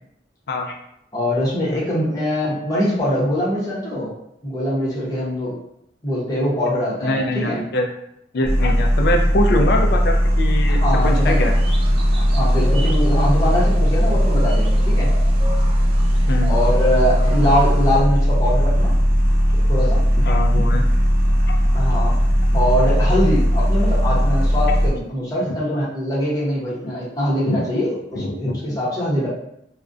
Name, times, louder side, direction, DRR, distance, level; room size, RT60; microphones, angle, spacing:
voice 1, 1.1-4.1 4.4-5.5 6.0-7.6 10.7-11.5 12.1-15.1 16.5-18.9 19.7-20.0 21.7-22.2 22.5-29.3, equal, 20° left, -8 dB, 0.7 m, -22 dB
voice 2, 7.0-7.9 8.3-11.5 16.3-16.5 20.2-20.8 22.5-22.6 26.8-26.9 27.5-27.6 28.1-28.8, left 1 dB, 60° left, 2 dB, 0.4 m, -23 dB
sound 1, 8.4-24.9, equal, 55° right, 0.8 m, -17 dB
sound 2, 11.0-18.0, left 1 dB, 30° right, 0.3 m, -36 dB
2.4 x 2.1 x 2.4 m, 0.76 s
head